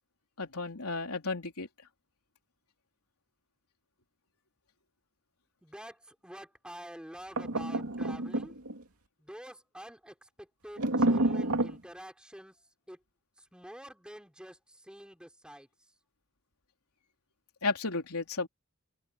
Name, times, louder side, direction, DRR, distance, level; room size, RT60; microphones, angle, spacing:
voice 1, 0.4-1.7 17.6-18.5, left 3 dB, 90° left, 3.5 m, -33 dB
voice 2, 5.6-8.5 9.2-12.5 12.9-13.0 13.5-15.7, equal, 5° right, 3.8 m, -48 dB
sound 1, 7.4-8.8 10.8-11.8, right 2 dB, 80° right, 2.4 m, -29 dB
head